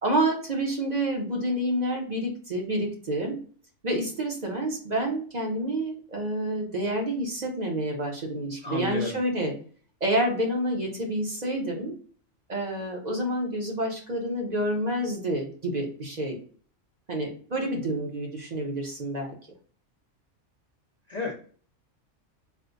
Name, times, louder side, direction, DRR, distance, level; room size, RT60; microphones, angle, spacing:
voice 1, 0.0-3.4 3.8-9.5 10.0-11.9 12.5-16.4 17.1-19.4, right 1 dB, 40° right, 0 dB, 0.7 m, -28 dB
voice 2, 8.6-9.2 21.1-21.3, left 4 dB, 55° left, 0 dB, 0.4 m, -31 dB
4.3 x 2.1 x 2.5 m, 0.44 s
omnidirectional pair, 1.3 m